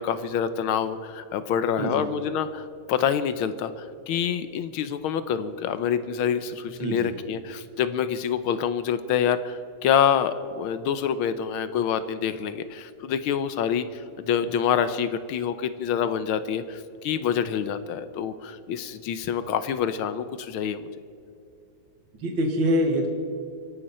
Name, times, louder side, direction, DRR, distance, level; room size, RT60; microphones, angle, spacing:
voice 1, 0.0-20.9, left 8 dB, 80° left, 12 dB, 1.6 m, -26 dB
voice 2, 22.2-23.1, equal, 60° right, 2 dB, 2.5 m, -24 dB
24.5 x 12.0 x 4.2 m, 2.5 s
omnidirectional pair, 2.3 m